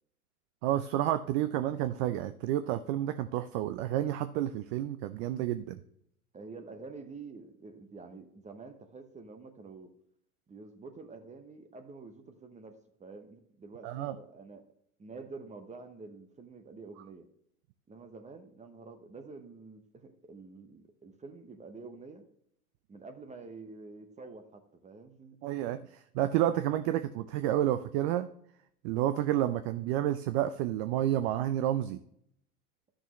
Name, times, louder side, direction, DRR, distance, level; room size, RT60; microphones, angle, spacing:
voice 1, 0.6-5.8 13.8-14.1 25.4-28.3 28.8-32.0, right 12 dB, 45° right, 11 dB, 0.6 m, -30 dB
voice 2, 6.3-9.9 10.5-14.6 15.0-17.3 17.9-22.2 22.9-25.4, right 4 dB, 15° right, 6 dB, 0.9 m, -48 dB
12.0 x 6.2 x 3.1 m, 0.70 s
hypercardioid pair, 95°, 45 cm